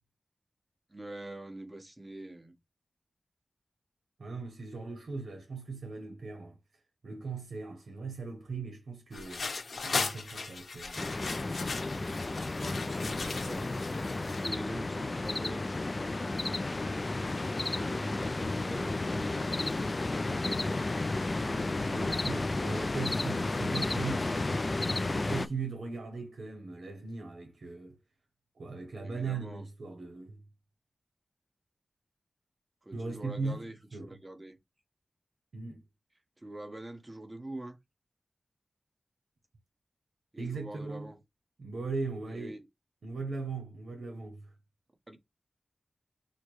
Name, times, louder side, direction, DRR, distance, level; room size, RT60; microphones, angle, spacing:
voice 1, 0.9-2.5 12.6-13.8 14.1-15.9 17.6-20.9 29.0-29.7 32.8-34.6 36.4-37.8 40.3-41.2 42.3-42.6 45.1-45.3, right 1 dB, 25° right, 1.2 m, -45 dB
voice 2, 4.2-6.6 7.0-9.5 9.8-11.0 21.4-24.6 25.1-28.0 28.6-30.4 32.9-33.6 33.9-34.2 35.5-35.8 40.4-41.1 41.6-42.6 43.0-44.5, right 4 dB, 85° right, 0.9 m, -39 dB
sound 1, 9.1-14.5, left 4 dB, 75° left, 1.0 m, -37 dB
sound 2, 11.0-25.5, left 2 dB, 40° left, 0.4 m, -32 dB
6.4 x 2.2 x 3.1 m
wide cardioid pair, 85°, 0 cm